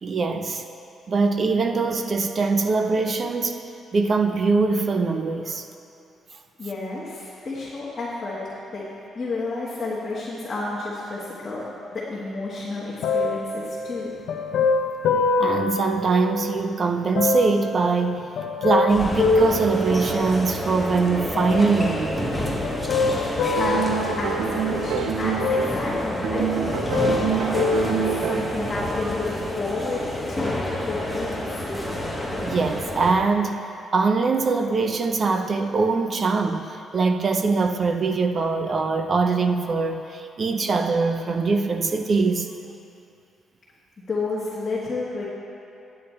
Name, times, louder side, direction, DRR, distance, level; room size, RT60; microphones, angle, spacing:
voice 1, 0.0-0.6 1.1-3.6 3.9-5.7 15.4-18.3 18.6-22.3 32.3-33.6 33.9-42.5, right 4 dB, 35° right, 6 dB, 0.5 m, -22 dB
voice 2, 6.6-8.4 8.7-8.8 9.1-11.6 11.9-14.1 23.2-23.3 23.6-26.5 27.6-30.0 30.3-31.7 44.1-45.3, left 3 dB, 25° left, -8 dB, 1.3 m, -31 dB
sound 1, 13.0-16.6 17.1-20.7 21.3-22.0 22.6-24.9 25.4-26.4 26.7-28.7 29.4-29.5, left 3 dB, 70° left, 0.6 m, -26 dB
sound 2, 18.9-33.1, left 1 dB, 5° right, 1.1 m, -29 dB
sound 3, 23.6-25.9 26.2-28.7, right 9 dB, 85° right, 0.4 m, -27 dB
10.0 x 8.6 x 4.4 m, 2.7 s
cardioid pair, 155°, 0 cm